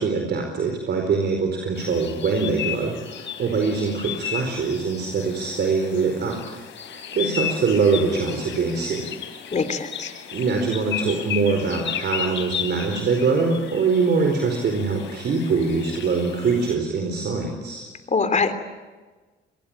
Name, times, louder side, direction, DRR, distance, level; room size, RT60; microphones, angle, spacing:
voice 1, 0.0-6.6 7.1-9.1 10.3-17.8, right 4 dB, 60° right, 3 dB, 4.6 m, -23 dB
sound 1, 1.8-16.7, left 9 dB, 70° left, 3.7 m, -34 dB
voice 2, 9.5-10.1 18.1-18.5, left 4 dB, 35° left, 10 dB, 3.3 m, -23 dB
26.5 x 21.5 x 8.9 m, 1.3 s
cardioid pair, 90°, 20 cm